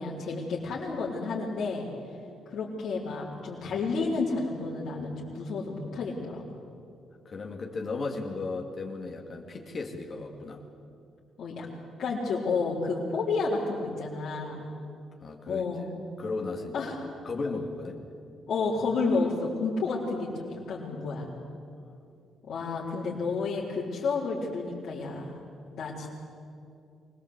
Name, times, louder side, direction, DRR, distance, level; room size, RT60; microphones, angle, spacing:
voice 1, 0.0-1.9 2.5-6.4 11.4-11.7 12.0-14.7 15.5-15.8 16.7-17.0 18.5-21.3 22.5-25.3 25.7-26.1, left 4 dB, 65° left, -8 dB, 4.1 m, -31 dB
voice 2, 7.2-10.6 15.2-15.9 16.2-16.9 17.2-18.0 21.9-22.0, left 3 dB, 45° left, 1 dB, 2.6 m, -35 dB
24.5 x 19.0 x 8.2 m, 2.5 s
cardioid pair, 90°, 0 cm